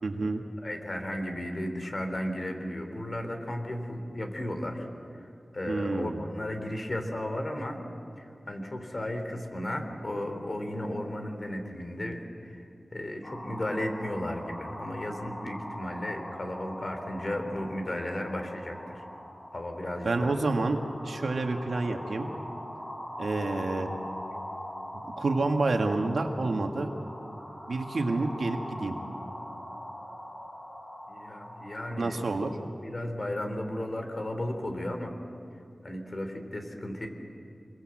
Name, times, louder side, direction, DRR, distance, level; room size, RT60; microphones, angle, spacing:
voice 1, 0.0-0.4 5.7-6.2 20.0-22.3 23.2-23.9 24.9-26.9 27.7-29.0 32.0-32.5, right 3 dB, 80° right, 3 dB, 2.0 m, -29 dB
voice 2, 0.6-4.9 5.2-5.3 5.5-7.8 8.2-19.0 19.5-20.1 31.1-32.4 32.8-35.1 35.8-37.1, left 1 dB, 45° left, 5 dB, 3.3 m, -34 dB
sound 1, 13.2-32.5, equal, 70° left, 6.6 m, -42 dB
26.5 x 22.0 x 7.8 m, 2.5 s
wide cardioid pair, 80°, 0 cm